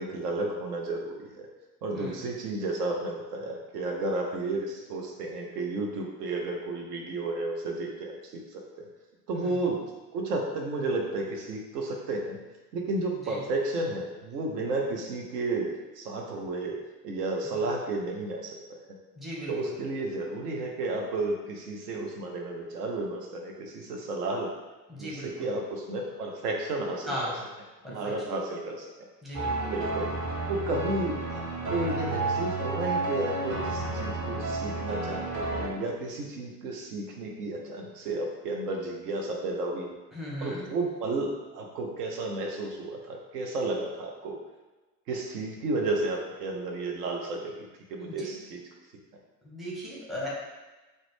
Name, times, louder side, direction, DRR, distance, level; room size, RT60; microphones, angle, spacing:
voice 1, 0.0-1.5 1.8-8.7 9.3-9.9 10.1-12.4 12.7-16.8 17.0-18.8 19.5-24.5 25.0-27.1 27.9-28.9 29.7-30.1 30.5-31.4 31.7-39.9 40.4-44.4 45.1-47.5 47.9-48.6, right 2 dB, 70° right, 0 dB, 0.6 m, -32 dB
voice 2, 13.1-13.4 17.4-17.6 19.2-19.7 24.9-25.5 27.1-27.4 27.8-28.1 29.2-29.7 40.1-40.7 48.1-48.4 49.4-50.3, equal, ahead, -6 dB, 0.5 m, -37 dB
sound 1, 29.3-35.7, right 2 dB, 35° right, 0.7 m, -31 dB
2.3 x 2.1 x 3.2 m, 1.2 s
figure-of-eight pair, 70°, 49 cm